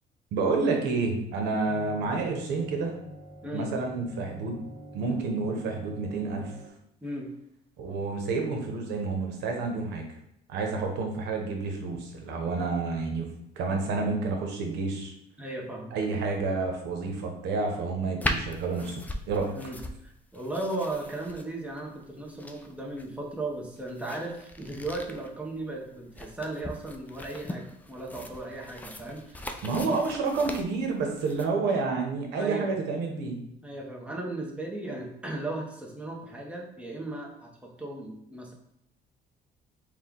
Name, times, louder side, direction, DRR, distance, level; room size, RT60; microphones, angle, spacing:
voice 1, 0.3-3.0 3.5-4.6 4.9-6.6 7.8-10.0 10.5-13.3 13.6-15.1 15.9-19.5 29.6-33.4, right 4 dB, 90° right, 2 dB, 0.9 m, -29 dB
sound 1, 1.6-6.7, right 1 dB, 35° right, 0.9 m, -46 dB
voice 2, 15.4-15.9 19.6-29.6 29.8-30.0 32.4-32.7 33.6-38.5, right 2 dB, 5° right, -1 dB, 0.9 m, -36 dB
sound 2, 18.2-31.5, left 1 dB, 10° left, 0.3 m, -39 dB
4.4 x 2.3 x 3.7 m, 0.78 s
cardioid pair, 110°, 17 cm